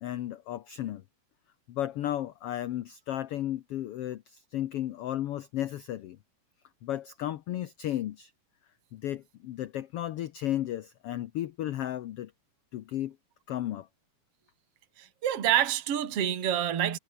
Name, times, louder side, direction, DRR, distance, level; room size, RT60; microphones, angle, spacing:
voice 1, 0.0-1.0 1.7-6.2 6.8-8.3 8.9-12.3 12.7-13.1 13.5-13.9, left 12 dB, 80° left, 1.3 m, -34 dB
voice 2, 15.0-17.0, right 10 dB, 50° right, 3.1 m, -27 dB
omnidirectional pair, 3.8 m